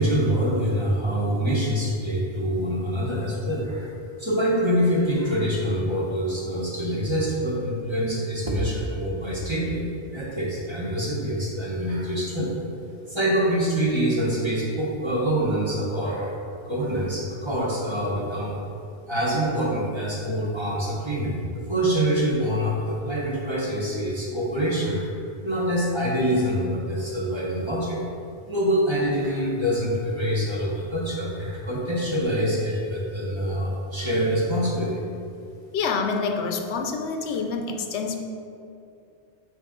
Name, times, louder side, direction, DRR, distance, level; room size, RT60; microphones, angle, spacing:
voice 1, 0.0-3.9 4.2-9.8 10.1-12.5 13.1-16.3 16.7-18.5 19.1-25.1 25.4-28.0 28.5-35.0, equal, 25° right, -5 dB, 1.1 m, -25 dB
voice 2, 35.7-38.2, left 4 dB, 85° left, 4 dB, 0.9 m, -27 dB
9.1 x 3.1 x 3.7 m, 2.5 s
omnidirectional pair, 1.1 m